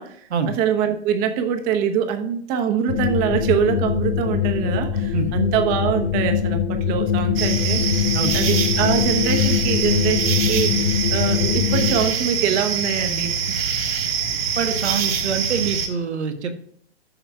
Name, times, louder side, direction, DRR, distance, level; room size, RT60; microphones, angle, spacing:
voice 1, 0.5-7.8 8.3-13.6, right 8 dB, 25° right, 6 dB, 1.0 m, -24 dB
sound 1, 2.9-12.1, left 8 dB, 45° left, 0.8 m, -22 dB
sound 2, 7.4-15.9, right 6 dB, 60° right, 1.5 m, -24 dB
voice 2, 14.6-16.5, right 6 dB, 75° right, 6 dB, 1.5 m, -25 dB
13.5 x 6.2 x 2.4 m, 0.65 s
hypercardioid pair, 130°, 34 cm